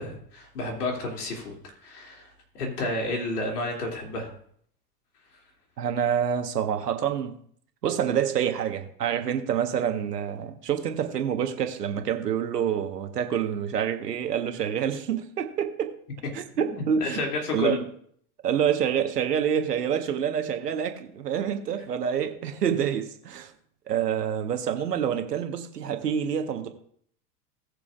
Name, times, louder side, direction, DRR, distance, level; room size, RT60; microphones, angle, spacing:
voice 1, 0.0-1.6 1.8-2.3 2.5-4.3 16.5-17.8, left 2 dB, 75° left, 3.1 m, -31 dB
voice 2, 5.8-7.4 7.8-15.9 16.3-17.2 17.5-17.8 18.4-23.5 23.9-26.7, right 8 dB, 80° right, 1.5 m, -27 dB
19.0 x 6.8 x 2.6 m
figure-of-eight pair, 80°, 47 cm